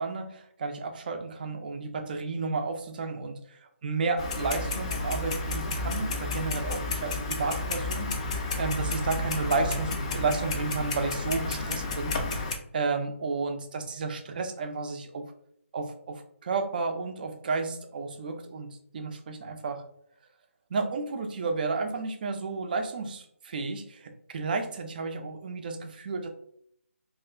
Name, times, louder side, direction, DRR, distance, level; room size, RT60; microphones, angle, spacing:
voice 1, 0.0-15.3 15.7-19.8 20.7-26.3, right 4 dB, 40° right, 5 dB, 0.4 m, -32 dB
Clock, 4.2-12.6, left 3 dB, 25° left, 0.4 m, -31 dB
2.8 x 2.4 x 3.2 m, 0.71 s
figure-of-eight pair, 155°, 8 cm